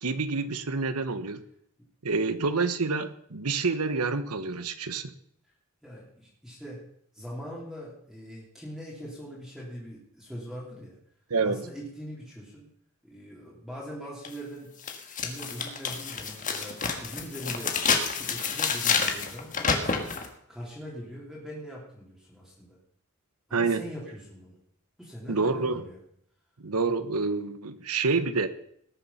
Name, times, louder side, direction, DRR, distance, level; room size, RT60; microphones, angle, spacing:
voice 1, 0.0-1.4 2.0-5.1 11.3-11.6 23.5-23.8 25.3-25.8 26.6-28.5, right 4 dB, 90° right, 11 dB, 1.1 m, -28 dB
voice 2, 5.8-6.8 7.1-11.0 11.4-12.7 13.0-14.7 15.2-17.8 18.1-20.0 20.5-22.8 23.5-24.6 25.0-26.0, equal, ahead, -7 dB, 3.3 m, -42 dB
sound 1, 14.2-14.3 14.8-20.3, left 5 dB, 35° left, 1.5 m, -29 dB
19.0 x 7.2 x 5.7 m, 0.69 s
head